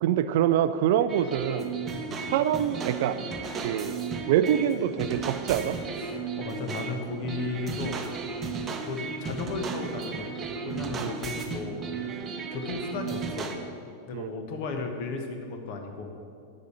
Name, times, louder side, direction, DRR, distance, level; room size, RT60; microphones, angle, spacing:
voice 1, 0.0-1.7 2.3-3.2 3.6-4.0 4.3-5.8 11.0-11.1 14.1-14.3, right 10 dB, 50° right, 13 dB, 0.4 m, -25 dB
sound 1, 1.1-13.6, right 5 dB, 25° right, 0.9 m, -34 dB
voice 2, 6.0-8.0 8.8-10.4 10.6-11.8 12.5-13.5 13.8-16.1, left 4 dB, 45° left, 4 dB, 1.3 m, -35 dB
8.2 x 6.4 x 8.0 m, 2.5 s
figure-of-eight pair, 90°, 0 cm